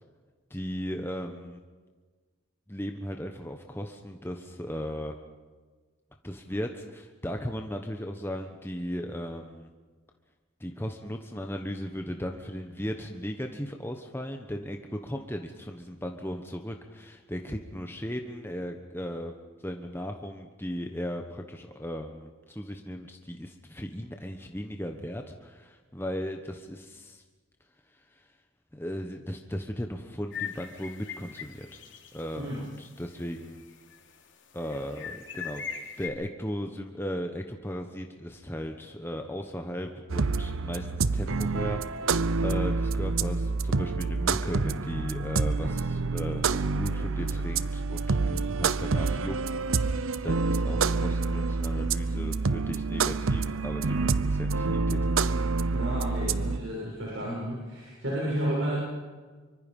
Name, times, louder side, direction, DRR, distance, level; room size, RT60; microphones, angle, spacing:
voice 1, 0.5-1.6 2.7-5.2 6.2-9.7 10.6-19.3 19.6-27.2 27.9-28.3 28.7-31.8 32.1-33.6 34.5-35.6 36.0-55.2, equal, 10° left, 4 dB, 1.2 m, -37 dB
sound 1, 30.3-32.2 32.6-32.7 33.2-34.0 34.6-36.1, left 7 dB, 60° left, 3.3 m, -40 dB
sound 2, 40.1-56.6, right 4 dB, 80° right, 0.8 m, -27 dB
voice 2, 55.7-58.8, right 1 dB, 65° right, -5 dB, 7.2 m, -31 dB
25.0 x 24.5 x 5.5 m, 1.4 s
head